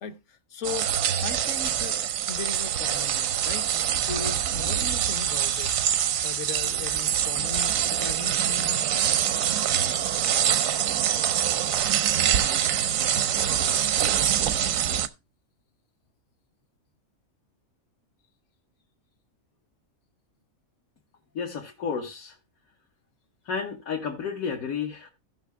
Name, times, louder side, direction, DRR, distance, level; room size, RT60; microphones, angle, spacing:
voice 1, 0.0-9.1, left 6 dB, 65° left, 1.1 m, -38 dB
sound 1, 0.6-15.1, right 9 dB, 80° right, 1.1 m, -25 dB
voice 2, 21.3-22.4 23.4-25.1, left 6 dB, 85° left, 1.6 m, -31 dB
15.5 x 5.7 x 3.4 m
omnidirectional pair, 1.4 m